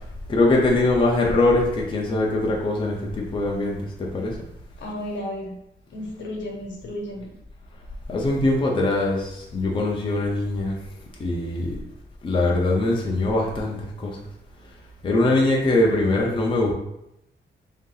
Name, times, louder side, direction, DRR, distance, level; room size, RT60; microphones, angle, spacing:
voice 1, 0.3-4.4 8.1-10.8 11.2-11.8 12.2-14.2 15.0-16.7, left 2 dB, 25° left, -2 dB, 0.5 m, -22 dB
voice 2, 4.8-5.5 5.9-7.3, left 1 dB, 70° left, 0 dB, 1.0 m, -33 dB
3.7 x 2.7 x 3.8 m, 0.83 s
wide cardioid pair, 165°, 20 cm